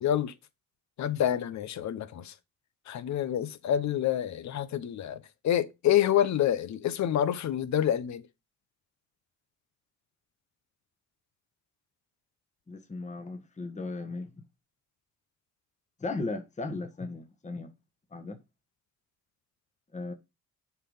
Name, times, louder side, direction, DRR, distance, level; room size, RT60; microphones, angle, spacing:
voice 1, 0.0-0.3 1.0-2.3 2.9-8.2, left 10 dB, 65° left, 0.9 m, -27 dB
voice 2, 12.7-14.3 16.0-17.7 18.1-18.4 19.9-20.1, left 3 dB, 25° left, 1.4 m, -36 dB
7.0 x 4.8 x 5.6 m
cardioid pair, 90°, 30 cm